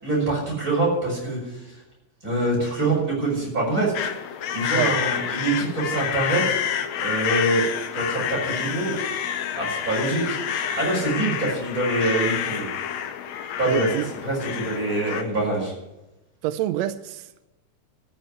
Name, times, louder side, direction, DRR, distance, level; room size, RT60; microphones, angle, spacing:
voice 1, 0.0-1.6 2.2-3.9 4.5-6.6 7.0-9.0 9.6-12.7 13.6-13.9 14.2-15.7, right 2 dB, 25° right, -4 dB, 6.0 m, -25 dB
sound 1, 3.9-15.2, left 9 dB, 70° left, 1.9 m, -28 dB
voice 2, 13.7-14.1 16.4-17.4, right 12 dB, 80° right, 11 dB, 1.5 m, -27 dB
13.5 x 6.8 x 9.9 m, 0.95 s
omnidirectional pair, 3.6 m